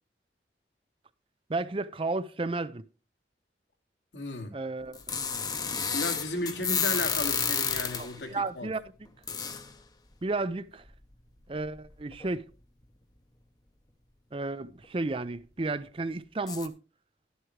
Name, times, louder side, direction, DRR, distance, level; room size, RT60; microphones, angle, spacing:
voice 1, 1.5-2.8 4.5-5.0 8.0-8.8 10.2-10.8 11.5-12.5 14.3-16.7, right 3 dB, 30° right, 0.5 m, -32 dB
voice 2, 4.1-4.5 5.9-8.7, left 2 dB, 85° left, 2.4 m, -34 dB
sound 1, 4.9-8.2 9.3-9.7 10.9-11.0 11.6-11.7 12.1-12.3 16.5-16.7, left 6 dB, 25° left, 0.8 m, -30 dB
12.0 x 11.0 x 3.2 m
head